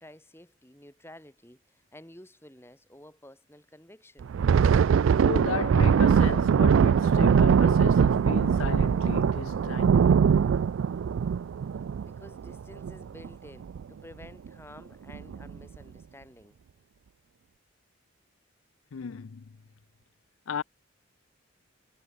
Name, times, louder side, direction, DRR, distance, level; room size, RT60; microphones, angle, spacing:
voice 1, 0.0-4.3 12.1-16.6, left 1 dB, 10° left, 6.5 m, -51 dB
Thunder, 4.2-13.3 13.6-13.8 14.2-14.5 15.1-15.6, right 7 dB, 70° right, 0.3 m, -22 dB
voice 2, 5.2-10.1 18.9-19.5 20.5-20.6, left 6 dB, 80° left, 0.5 m, -35 dB
head